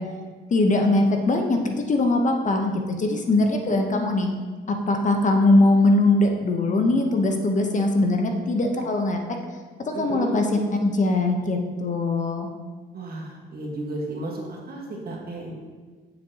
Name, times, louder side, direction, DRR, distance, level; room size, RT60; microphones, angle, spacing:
voice 1, 0.5-4.3 4.7-9.2 9.9-10.4 10.8-12.5, left 2 dB, 40° left, 4 dB, 0.8 m, -21 dB
voice 2, 3.1-4.1 9.9-10.4 12.9-15.5, right 2 dB, 50° right, -1 dB, 1.5 m, -34 dB
7.1 x 6.3 x 2.8 m, 1.4 s
cardioid pair, 90°, 20 cm